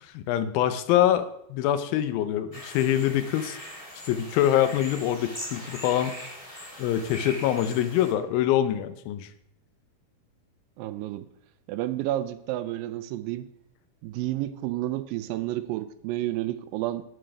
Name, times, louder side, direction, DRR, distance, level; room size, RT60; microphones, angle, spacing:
voice 1, 0.1-3.6 4.1-6.2 6.8-9.3, left 11 dB, 85° left, 11 dB, 2.5 m, -24 dB
sound 1, 2.5-8.1, left 1 dB, 20° left, 0.9 m, -41 dB
voice 2, 10.8-11.3 11.7-13.5 14.0-17.0, right 15 dB, 80° right, 12 dB, 2.2 m, -30 dB
11.0 x 9.0 x 3.4 m, 0.77 s
omnidirectional pair, 4.1 m